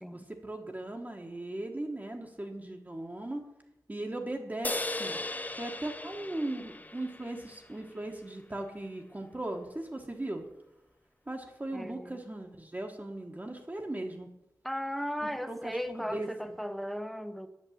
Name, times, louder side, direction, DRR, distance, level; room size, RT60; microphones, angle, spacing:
voice 1, 0.1-3.5 3.9-5.2 5.6-10.4 11.3-14.3 15.2-16.5, right 1 dB, 25° right, 1 dB, 1.2 m, -38 dB
sound 1, 4.6-8.1, left 2 dB, 25° left, 0.5 m, -37 dB
voice 2, 11.7-12.2 14.6-17.5, equal, ahead, 10 dB, 0.8 m, -36 dB
8.4 x 6.9 x 8.5 m, 0.90 s
wide cardioid pair, 75°, 7 cm